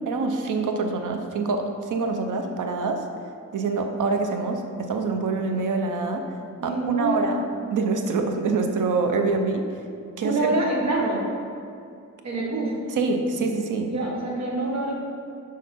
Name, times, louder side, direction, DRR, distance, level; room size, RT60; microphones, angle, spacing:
voice 1, 0.1-3.1 3.5-6.3 6.6-9.7 10.2-10.4 12.9-13.9, right 3 dB, 85° right, 5 dB, 0.8 m, -25 dB
voice 2, 6.6-7.4 10.2-11.2 12.2-12.8 13.8-14.9, right 2 dB, 60° right, -2 dB, 1.4 m, -25 dB
6.5 x 5.2 x 5.4 m, 2.4 s
wide cardioid pair, 120°, 30 cm